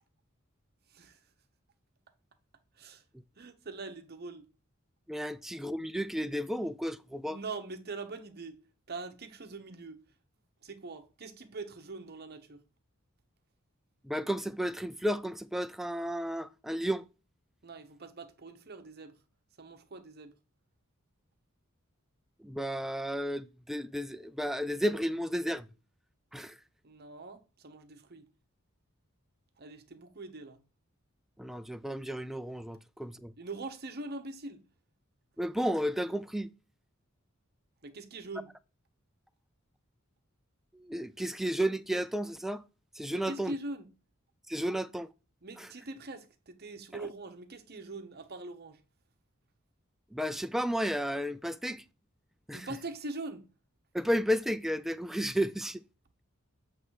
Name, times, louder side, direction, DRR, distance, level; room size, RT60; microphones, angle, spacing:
voice 1, 0.9-1.2 2.7-3.0 3.4-4.5 7.2-8.6 8.9-10.0 10.6-12.6 17.6-19.2 19.6-20.3 26.8-28.3 29.6-30.6 33.4-34.6 37.8-38.5 43.1-43.9 45.4-48.8 52.5-53.5, right 3 dB, 50° right, 1.0 m, -43 dB
voice 2, 5.1-7.4 14.0-17.0 22.4-25.7 26.3-26.5 31.4-33.3 35.4-36.5 40.7-42.6 43.0-43.5 44.5-45.1 50.1-51.8 52.5-52.6 53.9-55.8, equal, ahead, 0.3 m, -32 dB
7.7 x 3.3 x 6.3 m
head